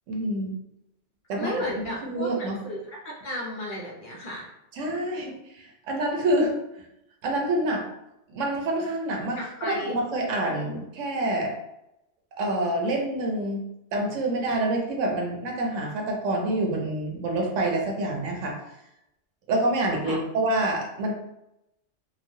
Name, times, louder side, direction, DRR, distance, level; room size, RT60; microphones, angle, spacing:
voice 1, 0.1-0.6 1.3-2.6 4.8-6.5 7.2-7.8 8.3-11.5 12.4-13.6 13.9-18.6 19.5-21.1, right 1 dB, 85° right, 1 dB, 1.0 m, -27 dB
voice 2, 1.4-4.5 9.4-10.0 10.4-10.6 20.0-20.2, left 1 dB, 55° left, -2 dB, 0.6 m, -34 dB
3.0 x 2.3 x 2.6 m, 0.85 s
omnidirectional pair, 1.3 m